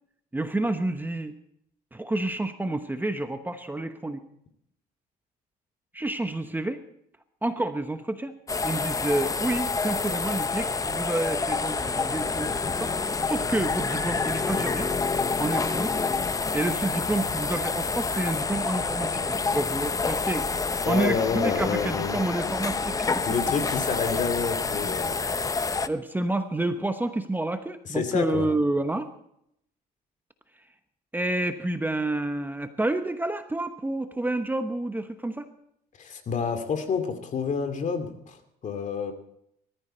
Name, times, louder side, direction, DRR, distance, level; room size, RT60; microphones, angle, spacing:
voice 1, 0.3-1.3 1.9-4.2 5.9-6.8 7.4-8.3 8.6-14.9 15.4-15.9 16.5-20.5 20.9-23.2 24.8-25.3 25.9-29.1 31.1-35.5, right 2 dB, 10° right, 8 dB, 1.0 m, -29 dB
sound 1, 8.5-25.9, left 4 dB, 20° left, 0.7 m, -28 dB
voice 2, 20.8-22.2 23.3-25.2 27.8-28.5 36.0-39.1, left 5 dB, 45° left, 7 dB, 2.5 m, -29 dB
20.0 x 14.0 x 4.4 m, 0.72 s
cardioid pair, 110°, 17 cm